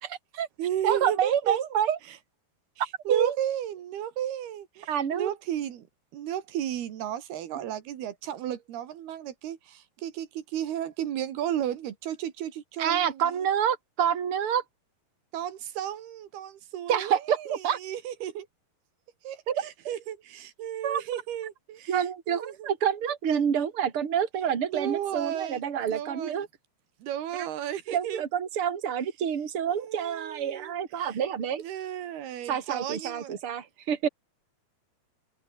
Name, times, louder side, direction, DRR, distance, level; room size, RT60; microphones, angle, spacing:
voice 1, 0.0-0.5 0.8-2.0 3.1-3.4 4.9-5.3 7.6-7.7 12.8-14.6 16.9-17.8 19.5-19.6 20.8-21.2 21.9-26.5 27.3-27.5 27.9-31.6 32.5-34.1, right 8 dB, 40° right, 3.3 m, -28 dB
voice 2, 0.6-1.6 2.1-2.2 2.8-5.9 6.1-13.3 15.3-18.5 19.2-22.7 24.7-26.5 27.0-28.2 29.7-31.2 31.6-33.4, right 11 dB, 90° right, 4.0 m, -34 dB
open air
omnidirectional pair, 4.4 m